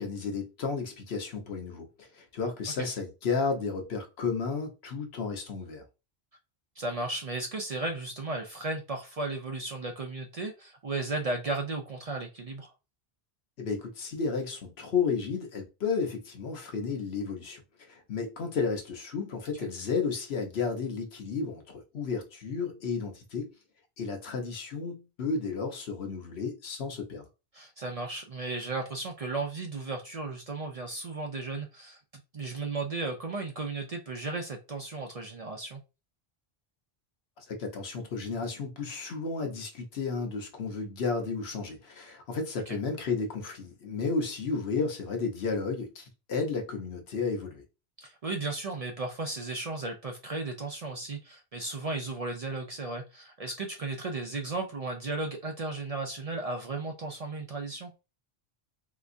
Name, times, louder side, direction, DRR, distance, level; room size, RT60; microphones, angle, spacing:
voice 1, 0.0-5.8 13.6-17.6 17.9-23.5 24.0-27.3 37.4-47.6, left 4 dB, 80° left, 1.1 m, -32 dB
voice 2, 6.8-12.7 27.5-35.8 42.7-42.8 48.0-57.9, right 3 dB, 50° right, 0.5 m, -35 dB
3.3 x 2.9 x 2.5 m
omnidirectional pair, 1.0 m